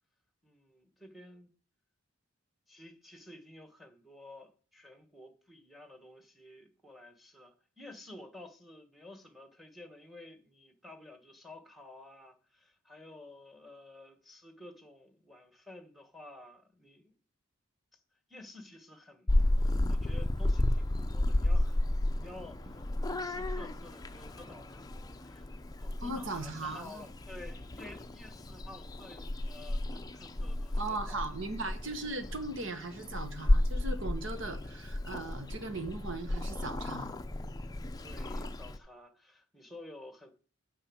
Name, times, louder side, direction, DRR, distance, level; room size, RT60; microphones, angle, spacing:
voice 1, 0.4-1.5 2.7-17.1 17.9-18.0 18.3-19.4 19.9-22.9 23.2-31.2 38.0-40.3, left 1 dB, ahead, 1.5 m, -52 dB
Purr / Meow, 19.3-38.8, left 1 dB, 15° left, 0.5 m, -33 dB
voice 2, 26.0-27.0 30.8-37.1, right 2 dB, 60° right, 1.5 m, -38 dB
8.8 x 7.0 x 6.4 m
head